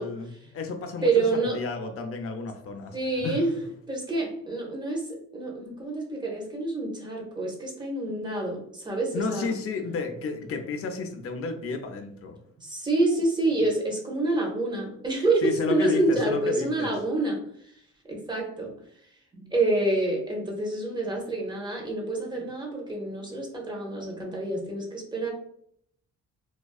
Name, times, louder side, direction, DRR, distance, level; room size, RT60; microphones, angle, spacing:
voice 1, 0.0-3.0 3.2-3.4 9.1-12.4 15.4-16.9, left 4 dB, 50° left, 5 dB, 0.5 m, -32 dB
voice 2, 1.0-1.6 2.9-3.5 3.9-9.5 12.6-17.7 18.1-18.7 19.3-25.3, right 2 dB, 15° right, -1 dB, 0.8 m, -27 dB
2.4 x 2.2 x 2.3 m, 0.67 s
cardioid pair, 90°, 30 cm